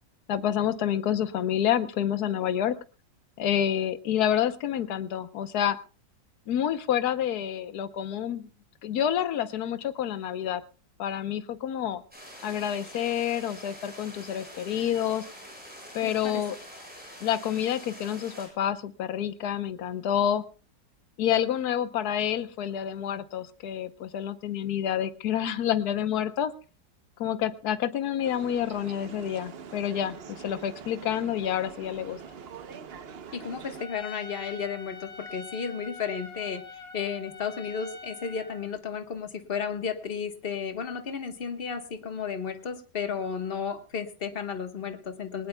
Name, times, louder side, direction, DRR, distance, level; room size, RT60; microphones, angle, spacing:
voice 1, 0.3-2.8 3.4-5.8 6.5-8.5 8.8-10.6 11.0-12.0 12.4-15.3 15.9-16.6 17.2-20.4 21.2-26.5 27.2-32.2, left 10 dB, 65° left, 12 dB, 1.3 m, -28 dB
sound 1, 12.1-18.5, equal, 5° right, 6.9 m, -46 dB
voice 2, 16.0-16.4 33.3-45.5, left 6 dB, 35° left, 7 dB, 1.3 m, -33 dB
sound 2, 28.2-33.9, right 6 dB, 50° right, 0.7 m, -44 dB
Trumpet, 33.8-38.7, left 3 dB, 85° left, 2.5 m, -44 dB
20.5 x 19.0 x 2.3 m, 0.35 s
omnidirectional pair, 2.0 m